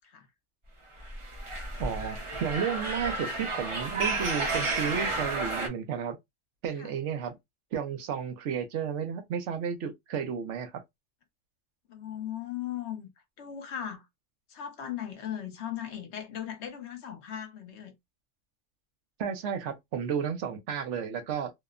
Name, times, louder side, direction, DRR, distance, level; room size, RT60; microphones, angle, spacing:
sound 1, 1.0-5.7, right 2 dB, 35° right, 0.6 m, -32 dB
voice 1, 1.8-6.2 6.6-7.4 7.7-10.8 19.2-21.5, right 7 dB, 75° right, 0.9 m, -32 dB
voice 2, 11.9-13.1 13.4-14.1 14.5-17.9, left 10 dB, 65° left, 1.0 m, -38 dB
2.8 x 2.0 x 2.3 m
omnidirectional pair, 1.3 m